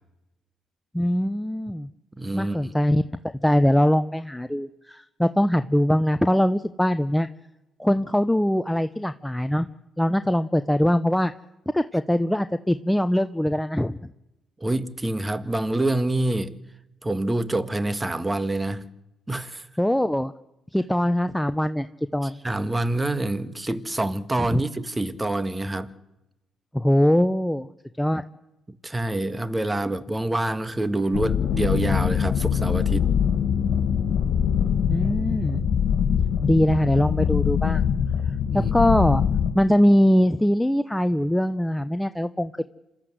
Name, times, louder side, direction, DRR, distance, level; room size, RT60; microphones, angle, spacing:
voice 1, 0.9-1.9 2.3-3.0 3.4-7.3 7.8-9.7 10.0-11.3 11.7-14.0 19.8-20.3 20.7-21.9 22.1-22.4 24.5-24.6 26.7-27.7 28.0-28.2 34.9-35.6 36.4-37.8 38.5-39.2 39.5-42.6, equal, 5° left, 0.8 m, -22 dB
voice 2, 2.2-2.7 14.6-16.6 17.0-18.9 19.3-19.7 22.2-25.9 28.8-33.1 38.4-38.9, right 2 dB, 20° right, 1.7 m, -26 dB
sound 1, 31.1-39.5, left 8 dB, 65° left, 2.1 m, -23 dB
27.0 x 13.5 x 8.0 m
supercardioid pair, 55°, 0 cm